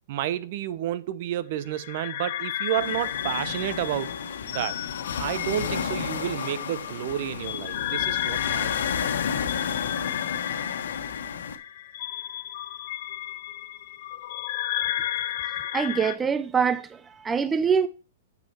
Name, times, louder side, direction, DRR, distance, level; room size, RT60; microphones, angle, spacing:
voice 1, 0.1-4.2 4.5-4.8 5.2-9.3, right 12 dB, 50° right, 0.7 m, -31 dB
sound 1, 1.7-16.2, left 13 dB, 55° left, 0.6 m, -33 dB
sound 2, 2.8-11.6, left 6 dB, 85° left, 1.3 m, -32 dB
voice 2, 15.7-17.9, right 6 dB, 15° right, 0.4 m, -24 dB
7.6 x 6.2 x 4.2 m
hypercardioid pair, 150°, 0 cm